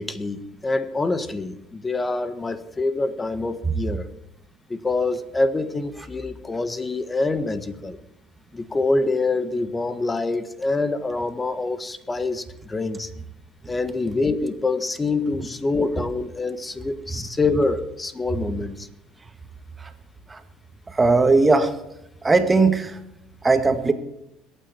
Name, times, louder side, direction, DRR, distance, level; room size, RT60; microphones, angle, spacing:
voice 1, 0.0-4.1 4.7-8.0 8.5-13.1 13.7-18.9, left 3 dB, 20° left, 12 dB, 1.5 m, -25 dB
voice 2, 21.0-21.7 22.2-22.9 23.4-23.9, right 3 dB, 20° right, 8 dB, 2.0 m, -17 dB
22.0 x 9.2 x 4.6 m, 0.82 s
supercardioid pair, 80°, 0 cm